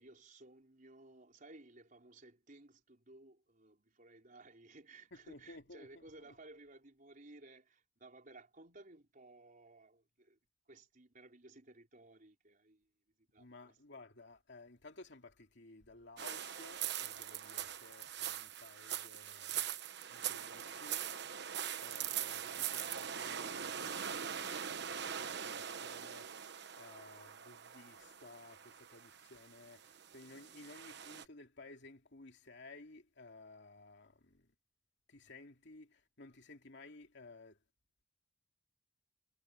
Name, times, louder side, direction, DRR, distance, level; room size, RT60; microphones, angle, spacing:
voice 1, 0.0-10.4 10.7-12.9 13.2-13.8, right 2 dB, 45° right, 4.4 m, -58 dB
voice 2, 5.1-6.3 13.4-19.7 20.1-21.1 21.8-26.4 26.8-34.5 35.1-37.6, left 2 dB, 65° left, 2.7 m, -56 dB
sound 1, 16.2-31.3, right 9 dB, 60° right, 1.2 m, -42 dB
head